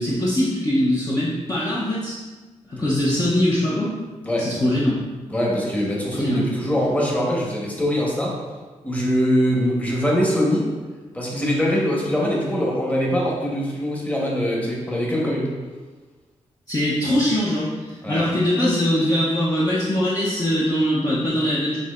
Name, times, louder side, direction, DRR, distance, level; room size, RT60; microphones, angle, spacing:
voice 1, 0.0-2.2 2.7-3.9 4.4-5.0 6.1-6.5 16.7-21.8, left 1 dB, 30° left, -8 dB, 0.8 m, -22 dB
voice 2, 5.3-8.3 8.8-10.7 11.1-15.5 18.0-18.3, equal, 15° left, -4 dB, 1.2 m, -22 dB
6.1 x 2.8 x 2.5 m, 1.3 s
cardioid pair, 85°, 12 cm